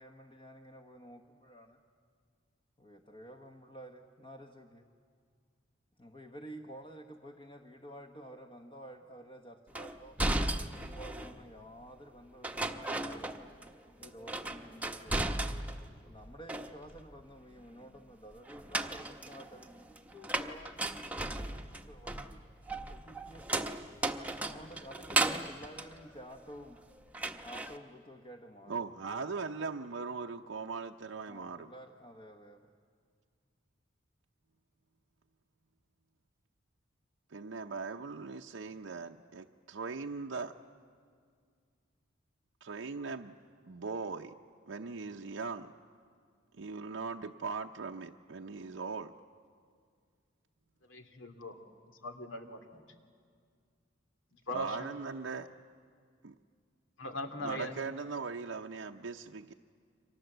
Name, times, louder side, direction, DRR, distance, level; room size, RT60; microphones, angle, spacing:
voice 1, 0.0-1.8 2.8-4.9 6.0-10.2 10.7-13.4 14.0-15.3 16.0-22.4 22.9-23.7 24.4-26.8 27.4-28.9 31.3-32.7, right 1 dB, 30° left, 3 dB, 1.2 m, -51 dB
sound 1, 9.7-11.4 12.4-13.7 14.0-15.9 16.2-17.1 18.5-26.8 27.1-27.8, right 2 dB, 10° right, 1.0 m, -36 dB
voice 2, 28.7-31.7 37.3-40.6 42.6-43.4 43.6-44.3 44.7-45.7 46.5-49.1 54.5-55.5 56.2-56.3 57.4-59.5, right 4 dB, 75° right, 2 dB, 0.7 m, -39 dB
voice 3, 50.9-51.6 52.0-52.8 54.5-54.9 57.0-57.7, left 1 dB, 85° left, 6 dB, 2.6 m, -40 dB
30.0 x 24.5 x 7.9 m, 2.1 s
head